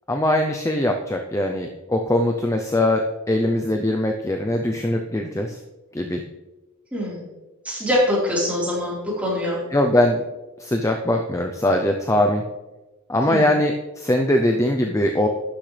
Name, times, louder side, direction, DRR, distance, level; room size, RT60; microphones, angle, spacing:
voice 1, 0.1-5.6 5.9-6.2 9.7-10.2 10.6-12.4 13.1-15.3, left 1 dB, 15° left, 4 dB, 0.6 m, -21 dB
voice 2, 6.9-7.2 7.6-9.6 13.3-13.5, left 1 dB, 5° right, -7 dB, 4.2 m, -23 dB
12.0 x 10.5 x 3.4 m, 1.1 s
head